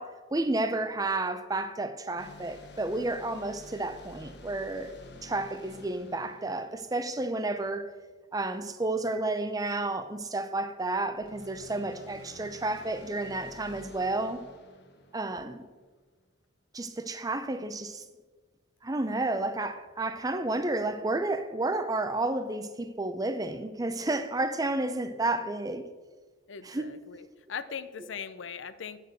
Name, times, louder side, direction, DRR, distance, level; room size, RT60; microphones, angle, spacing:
voice 1, 0.0-4.9 5.2-7.9 8.3-14.4 15.1-15.6 16.7-18.0 18.8-25.8 26.6-26.9, right 2 dB, 20° right, 0.6 m, -31 dB
sound 1, 2.2-7.6 11.1-15.9, left 2 dB, 60° left, 1.2 m, -51 dB
voice 2, 26.5-29.0, left 7 dB, 90° left, 0.6 m, -40 dB
8.5 x 6.7 x 6.4 m
head